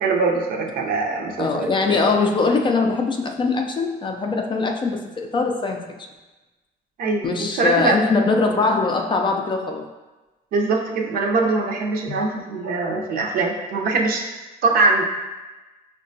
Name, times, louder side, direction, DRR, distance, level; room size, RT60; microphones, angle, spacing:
voice 1, 0.0-2.1 7.0-8.0 10.5-14.2 14.6-15.0, right 3 dB, 60° right, 1 dB, 0.6 m, -22 dB
voice 2, 1.4-5.9 7.2-9.9 12.1-12.2, left 4 dB, 30° left, 3 dB, 0.4 m, -22 dB
5.4 x 2.2 x 2.6 m, 1.2 s
cardioid pair, 110°, 17 cm